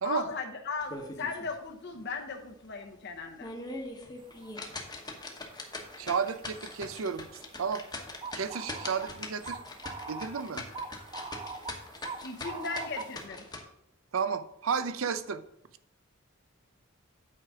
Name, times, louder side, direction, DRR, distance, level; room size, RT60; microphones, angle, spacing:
voice 1, 0.0-3.5 12.2-13.5, left 4 dB, 55° left, 3 dB, 0.9 m, -37 dB
sound 1, 0.8-1.5 1.9-2.0 2.5-2.6 3.2-13.6, left 2 dB, 20° left, 1.1 m, -42 dB
sound 2, 4.4-4.5 4.9-13.3, right 4 dB, 25° right, 0.6 m, -44 dB
voice 2, 6.0-7.3 7.6-7.8 8.3-9.6 10.1-10.6 14.1-15.4, right 6 dB, 70° right, 12 dB, 0.5 m, -32 dB
8.7 x 4.9 x 4.9 m, 0.78 s
head